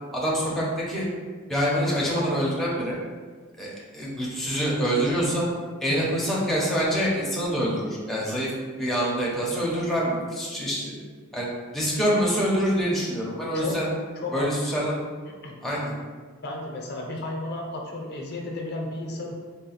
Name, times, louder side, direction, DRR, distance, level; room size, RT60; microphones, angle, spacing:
voice 1, 0.1-1.1 1.5-3.0 3.6-5.5 5.8-8.5 8.8-10.9 11.3-11.5 11.7-13.9 14.3-15.0 15.6-15.9, equal, ahead, -6 dB, 0.7 m, -25 dB
voice 2, 5.9-6.2 13.5-13.8 14.2-14.7 15.2-15.5 16.4-19.3, left 2 dB, 50° left, 0 dB, 0.6 m, -33 dB
3.9 x 2.2 x 4.1 m, 1.5 s
head